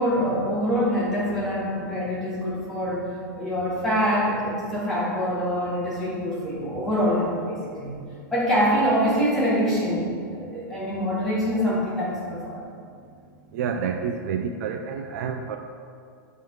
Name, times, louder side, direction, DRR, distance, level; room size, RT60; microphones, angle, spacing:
voice 1, 0.0-3.1 3.4-8.0 8.3-10.0 10.3-12.6, equal, 5° left, -9 dB, 1.7 m, -25 dB
voice 2, 13.5-15.6, right 6 dB, 50° right, 4 dB, 0.4 m, -28 dB
7.8 x 3.7 x 4.6 m, 2.3 s
supercardioid pair, 165°, 11 cm